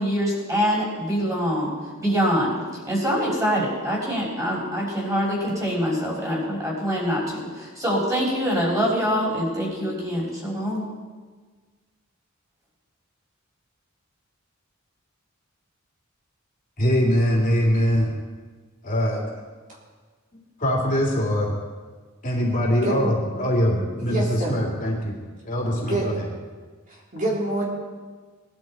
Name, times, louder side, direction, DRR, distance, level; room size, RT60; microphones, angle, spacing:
voice 1, 0.0-1.7 2.0-2.5 2.9-10.9, equal, 15° right, -5 dB, 5.9 m, -24 dB
voice 2, 16.8-18.1 18.8-19.4 20.6-21.5 22.2-25.1 25.4-26.3, equal, 40° left, -3 dB, 3.1 m, -22 dB
voice 3, 24.0-24.6 25.8-26.0 27.1-27.7, right 1 dB, 40° right, -5 dB, 3.7 m, -26 dB
21.0 x 12.0 x 4.5 m, 1.4 s
head